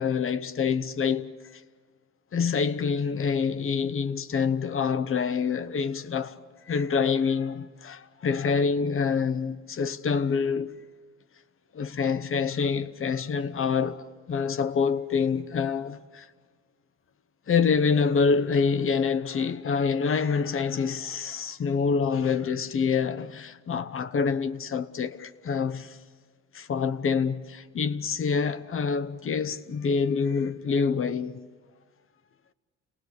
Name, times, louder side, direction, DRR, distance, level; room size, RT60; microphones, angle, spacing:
voice 1, 0.0-1.6 2.3-10.8 11.7-16.3 17.5-26.0 26.5-31.4, left 5 dB, 45° left, 1.0 m, -26 dB
29.5 x 18.5 x 8.2 m
cardioid pair, 90°, 30 cm